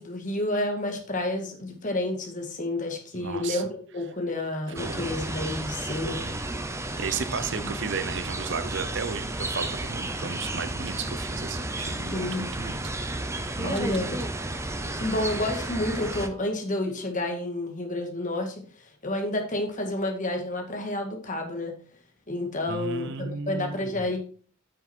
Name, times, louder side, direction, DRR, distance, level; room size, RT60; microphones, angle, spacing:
voice 1, 0.0-6.2 7.5-7.7 12.1-12.7 13.6-14.3 14.9-18.6 19.0-21.7 22.3-24.2, left 1 dB, 40° left, 3 dB, 1.9 m, -30 dB
voice 2, 3.1-3.6 4.8-5.1 6.0-6.4 7.0-12.8 13.6-14.2 22.7-24.1, right 5 dB, 60° right, 11 dB, 0.8 m, -34 dB
sound 1, 4.8-16.3, right 2 dB, 15° right, 0.8 m, -32 dB
8.8 x 6.5 x 4.4 m, 0.43 s
head